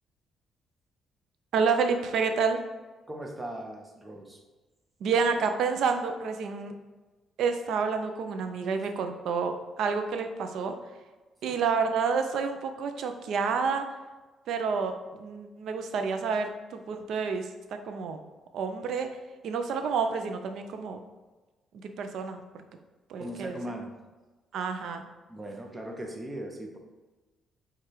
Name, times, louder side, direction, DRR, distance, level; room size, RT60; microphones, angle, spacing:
voice 1, 1.5-2.6 5.0-6.7 7.4-10.7 11.4-13.9 14.5-17.5 17.8-18.2 18.5-19.1 19.4-21.0 21.8-22.4 23.1-23.6 24.5-25.0, right 5 dB, 75° right, 7 dB, 0.5 m, -29 dB
voice 2, 3.1-4.4 11.5-11.6 23.2-23.9 25.3-26.8, right 1 dB, 20° right, 2 dB, 0.8 m, -39 dB
4.7 x 2.4 x 4.4 m, 1.2 s
cardioid pair, 90°, 0 cm